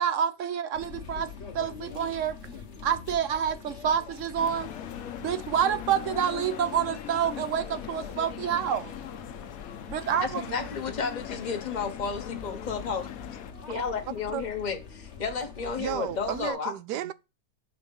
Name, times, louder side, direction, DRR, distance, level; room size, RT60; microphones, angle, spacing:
voice 1, 0.0-1.3 1.5-2.3 2.8-4.7 5.2-8.9 9.9-10.4, right 8 dB, 60° right, 1.0 m, -28 dB
sound 1, 0.7-16.5, left 6 dB, 45° left, 1.3 m, -44 dB
sound 2, 4.4-13.5, left 10 dB, 65° left, 1.0 m, -41 dB
voice 2, 10.2-13.1 13.7-16.7, left 5 dB, 30° left, 1.2 m, -32 dB
voice 3, 15.8-17.1, right 11 dB, 85° right, 1.2 m, -33 dB
5.7 x 4.8 x 5.4 m
omnidirectional pair, 1.8 m